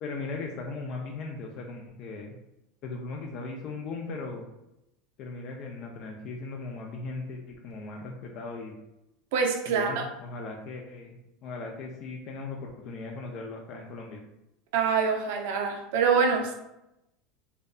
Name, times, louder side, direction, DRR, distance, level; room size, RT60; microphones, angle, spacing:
voice 1, 0.0-2.3 2.8-4.4 5.2-8.7 9.7-14.2, left 3 dB, 55° left, 1 dB, 0.4 m, -38 dB
voice 2, 9.3-10.1 14.7-16.5, right 5 dB, 75° right, 2 dB, 0.4 m, -25 dB
2.5 x 2.2 x 2.3 m, 0.89 s
supercardioid pair, 120°, 0 cm